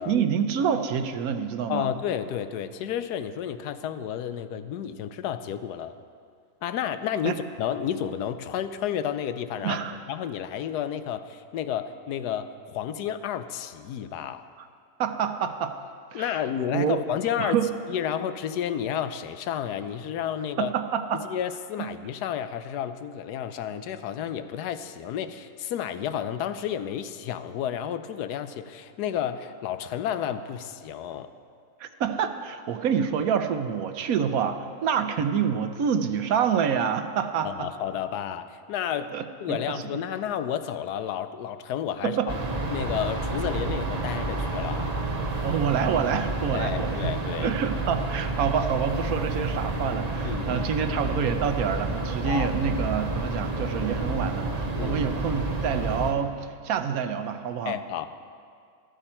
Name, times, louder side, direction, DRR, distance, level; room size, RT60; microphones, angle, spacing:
voice 1, 0.1-1.9 7.2-7.3 9.6-10.0 14.6-14.7 15.0-15.8 16.1-16.4 16.7-17.0 17.4-17.7 20.6-21.2 21.8-21.9 31.8-37.7 39.1-39.8 42.0-42.3 45.4-47.1 47.4-57.8, right 7 dB, 70° right, 9 dB, 1.1 m, -27 dB
voice 2, 1.7-5.9 6.6-9.8 10.1-14.4 16.1-17.6 17.9-20.7 21.1-31.3 37.4-39.1 39.4-42.2 42.7-44.9 46.5-47.5 50.2-50.7 52.2-52.5 54.8-55.0 57.6-58.1, left 9 dB, 90° left, 11 dB, 1.2 m, -31 dB
sound 1, 42.3-56.1, right 2 dB, 30° right, 1.0 m, -29 dB
14.0 x 13.0 x 4.4 m, 2.2 s
omnidirectional pair, 1.7 m